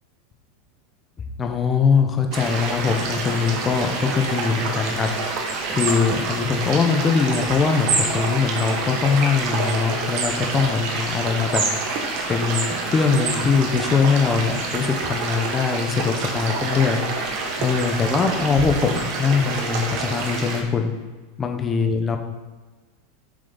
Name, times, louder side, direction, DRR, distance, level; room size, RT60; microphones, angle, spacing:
voice 1, 1.4-5.1 5.7-12.0 12.3-17.3 17.6-20.9 21.4-22.2, left 5 dB, 20° left, 4 dB, 1.0 m, -22 dB
sound 1, 2.3-20.6, right 3 dB, 50° right, 1.7 m, -27 dB
7.6 x 6.4 x 4.1 m, 1.3 s
supercardioid pair, 135°, 0 cm